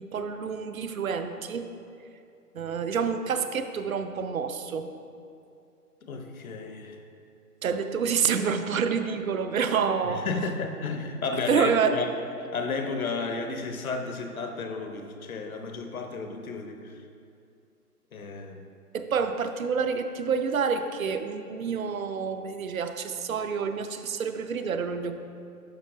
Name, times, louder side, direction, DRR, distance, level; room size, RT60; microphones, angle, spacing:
voice 1, 0.0-1.7 2.5-4.9 7.6-10.3 11.3-12.0 18.9-25.2, right 6 dB, 60° right, 9 dB, 0.6 m, -28 dB
voice 2, 6.0-7.0 10.3-12.1 12.5-16.9 18.1-18.6, left 4 dB, 60° left, 5 dB, 0.8 m, -32 dB
11.0 x 5.6 x 2.5 m, 2.5 s
figure-of-eight pair, 140°, 47 cm